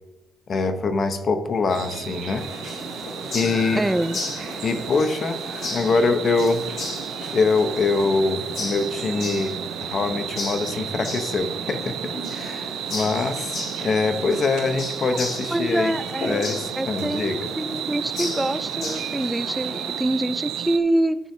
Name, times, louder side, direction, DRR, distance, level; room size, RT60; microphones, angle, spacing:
voice 1, 0.5-2.5 3.3-3.9 4.6-5.4 5.7-6.6 7.3-15.9 16.3-17.5, left 4 dB, 50° left, 8 dB, 0.9 m, -24 dB
sound 1, 1.7-20.8, right 10 dB, 85° right, 0.6 m, -33 dB
sound 2, 2.4-20.0, left 2 dB, 65° left, 2.4 m, -35 dB
voice 2, 3.8-4.2 15.5-16.4 16.8-21.2, right 1 dB, 10° right, 12 dB, 0.5 m, -25 dB
13.5 x 6.2 x 2.8 m, 1.1 s
cardioid pair, 90°, 0 cm